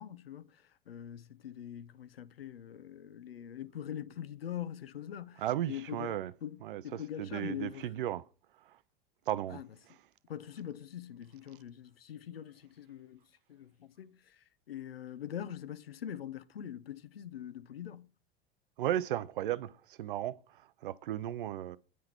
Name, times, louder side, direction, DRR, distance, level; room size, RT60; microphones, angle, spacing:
voice 1, 0.0-8.0 9.5-9.7 10.3-13.2 13.5-18.1, left 10 dB, 75° left, 0.5 m, -43 dB
voice 2, 5.4-6.3 6.6-6.8 7.2-8.2 8.7-8.8 9.3-9.6 18.8-21.8, right 12 dB, 60° right, 0.4 m, -35 dB
9.4 x 3.8 x 4.3 m
figure-of-eight pair, 80°, 30 cm